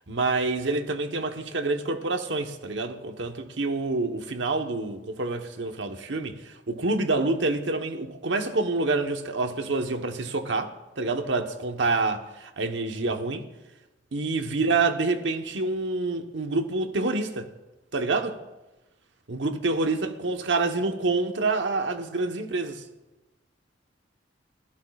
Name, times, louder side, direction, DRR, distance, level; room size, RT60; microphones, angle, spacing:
voice 1, 0.1-13.5 14.1-17.5 17.9-18.4 19.3-22.8, right 3 dB, 75° right, 1.1 m, -27 dB
25.0 x 16.0 x 2.4 m
head